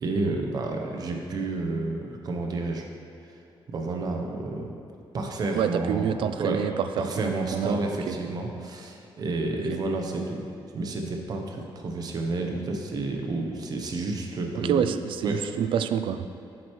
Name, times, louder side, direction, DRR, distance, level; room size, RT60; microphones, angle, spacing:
voice 1, 0.0-2.9 3.7-4.7 5.1-6.1 6.4-6.6 7.0-10.4 10.7-14.9 15.2-15.4, right 2 dB, 45° right, 2 dB, 0.8 m, -30 dB
voice 2, 5.5-6.9 7.2-8.2 9.5-9.6 14.5-16.3, right 8 dB, 65° right, 10 dB, 0.4 m, -27 dB
9.1 x 7.4 x 3.2 m, 2.7 s
wide cardioid pair, 170°, 9 cm